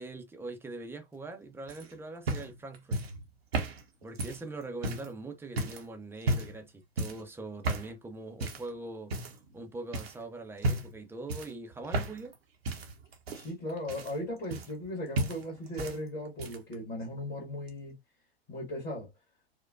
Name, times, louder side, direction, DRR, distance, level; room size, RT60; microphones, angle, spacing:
voice 1, 0.0-3.0 4.0-9.1 9.5-12.3, right 2 dB, 5° right, 0.6 m, -42 dB
sound 1, 1.7-5.1 5.6-5.9 6.2-6.6 7.0-7.3 7.6-7.9 8.4-8.7 9.1-9.6 9.9-10.2 10.6-11.0 11.3-12.4 12.6-14.9 15.2-16.0 16.3-16.7 17.7-17.8, right 2 dB, 70° right, 0.9 m, -34 dB
voice 2, 13.3-17.9 18.5-19.1, left 1 dB, 30° left, 1.7 m, -37 dB
4.6 x 2.2 x 2.5 m
figure-of-eight pair, 85°, 32 cm